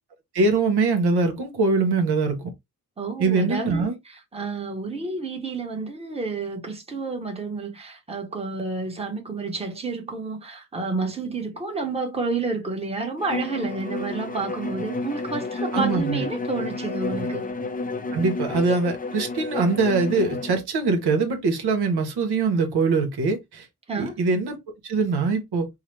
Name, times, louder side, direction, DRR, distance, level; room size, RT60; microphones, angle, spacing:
voice 1, 0.3-2.5 3.2-3.9 15.7-16.2 18.1-23.7 24.0-24.6 24.8-25.7, right 4 dB, 75° right, 1.1 m, -23 dB
voice 2, 3.0-17.4 23.9-24.2, right 3 dB, 15° right, 1.0 m, -30 dB
Bowed string instrument, 13.2-20.6, left 3 dB, 20° left, 0.5 m, -31 dB
4.7 x 2.1 x 3.2 m
cardioid pair, 105°, 39 cm